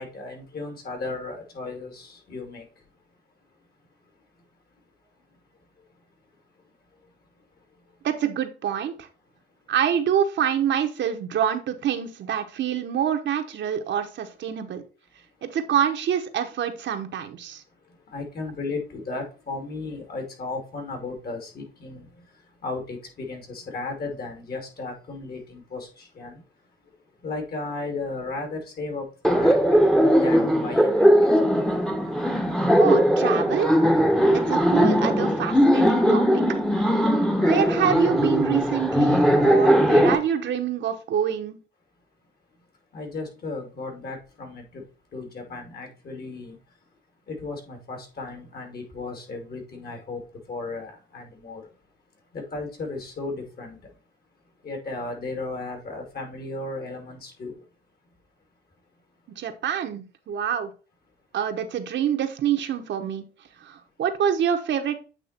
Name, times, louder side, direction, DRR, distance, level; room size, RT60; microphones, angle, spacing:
voice 1, 0.0-2.9 3.6-4.8 5.3-6.1 6.5-8.1 9.3-9.7 15.2-15.3 17.5-31.5 32.4-32.6 34.2-34.3 37.0-37.4 42.5-42.7 42.9-44.9 45.1-47.0 47.3-51.8 52.1-54.0 54.4-57.7, left 3 dB, 50° left, 2.6 m, -36 dB
voice 2, 8.0-9.1 9.7-14.8 15.4-17.6 32.8-33.8 34.3-36.4 37.4-41.6 59.3-60.7 61.3-63.2 63.6-65.1, right 9 dB, 65° right, 1.0 m, -26 dB
Laughter, 29.2-40.1, equal, ahead, 1.0 m, -19 dB
8.4 x 3.1 x 4.3 m
cardioid pair, 90°, 20 cm